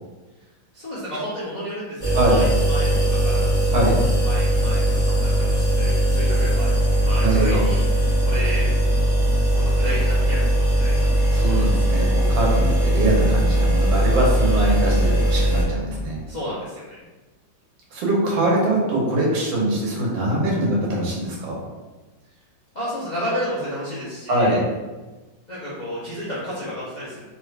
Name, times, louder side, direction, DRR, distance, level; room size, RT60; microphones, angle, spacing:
voice 1, 0.7-3.5 4.2-7.8 8.2-8.7 9.5-10.9 11.3-11.6 12.4-12.6 16.3-16.8 22.7-24.6 25.5-27.2, equal, 60° left, -10 dB, 0.4 m, -32 dB
sound 1, 2.0-15.6, right 1 dB, ahead, 0.9 m, -19 dB
voice 2, 7.2-7.7 11.3-16.2 17.9-21.6 24.3-24.6, right 1 dB, 90° right, -3 dB, 1.7 m, -22 dB
3.7 x 3.2 x 2.4 m, 1.2 s
omnidirectional pair, 2.1 m